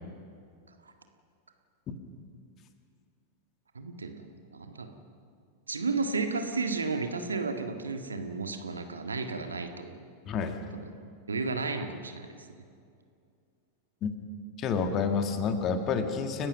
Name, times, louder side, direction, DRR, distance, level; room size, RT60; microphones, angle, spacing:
voice 1, 3.7-4.9 5.7-10.0 11.3-12.3, right 4 dB, 75° right, 6 dB, 1.7 m, -33 dB
voice 2, 10.3-10.6 14.0-14.1 14.6-16.5, left 5 dB, 35° left, 7 dB, 2.0 m, -29 dB
29.5 x 15.5 x 6.0 m, 2.4 s
figure-of-eight pair, 90°, 0 cm